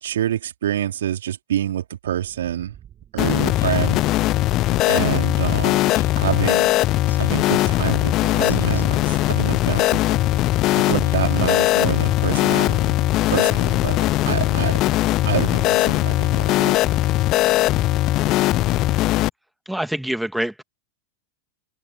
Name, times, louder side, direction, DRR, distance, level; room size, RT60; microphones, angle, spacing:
voice 1, 0.0-2.8 3.1-4.0 4.9-5.9 6.1-6.7 7.1-10.2 10.7-12.9 13.3-14.0 14.2-14.8 15.2-16.8, right 11 dB, 60° right, 3.2 m, -27 dB
sound 1, 2.1-19.3, right 10 dB, 25° right, 6.4 m, -50 dB
sound 2, 3.2-19.3, left 17 dB, 35° left, 0.7 m, -20 dB
Speech synthesizer, 3.6-3.9 4.7-5.1 5.9-6.2 7.1-7.5 8.4-8.8 9.7-10.0 11.0-11.3 12.2-12.5 13.3-13.6 14.5-14.8 15.6-16.0, left 4 dB, 75° left, 7.5 m, -37 dB
voice 2, 19.7-20.6, right 1 dB, ahead, 1.9 m, -25 dB
figure-of-eight pair, 90°, 0 cm